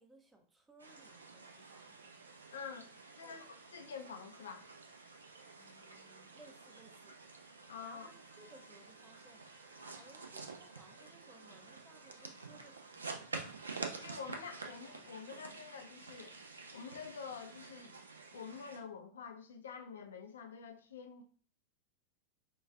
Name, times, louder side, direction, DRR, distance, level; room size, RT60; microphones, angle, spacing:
voice 1, 0.0-2.1 3.2-3.5 5.6-7.2 7.8-9.4 9.9-13.3, right 2 dB, 10° right, 0.5 m, -62 dB
sound 1, 0.8-18.8, right 4 dB, 75° right, 0.4 m, -49 dB
voice 2, 2.5-2.9 3.2-3.5 3.7-4.7 7.7-8.1 14.0-16.4 16.7-18.0 18.3-21.2, left 6 dB, 65° left, 0.5 m, -47 dB
Trumpet, 7.5-12.9, left 3 dB, 45° left, 0.8 m, -68 dB
4.6 x 2.3 x 2.3 m
figure-of-eight pair, 90°, 0 cm